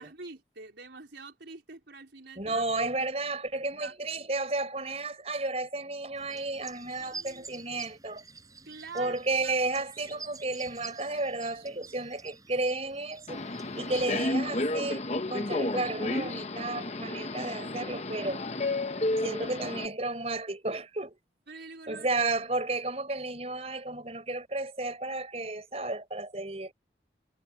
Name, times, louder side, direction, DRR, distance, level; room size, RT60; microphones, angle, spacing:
voice 1, 0.0-2.6 3.8-3.9 7.0-7.5 8.6-9.1 9.4-9.5 21.5-22.1, right 4 dB, 85° right, 4.2 m, -45 dB
voice 2, 2.4-8.2 8.9-13.4 13.8-18.4 19.2-21.2 21.9-26.7, right 2 dB, 35° right, 5.0 m, -32 dB
sound 1, 6.2-14.1, right 5 dB, 20° right, 7.7 m, -48 dB
Subway metro underground, 13.3-19.9, left 2 dB, 35° left, 0.9 m, -32 dB
head